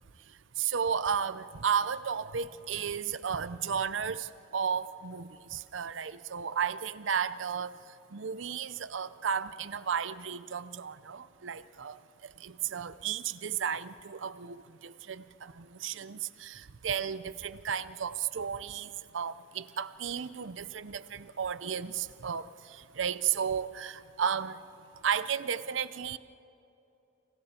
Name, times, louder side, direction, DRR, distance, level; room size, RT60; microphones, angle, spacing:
voice 1, 0.6-4.3 4.5-7.7 8.1-12.0 12.4-22.5 22.9-24.6 25.0-26.2, right 7 dB, 75° right, 15 dB, 0.6 m, -33 dB
30.0 x 28.0 x 4.4 m, 2.7 s
head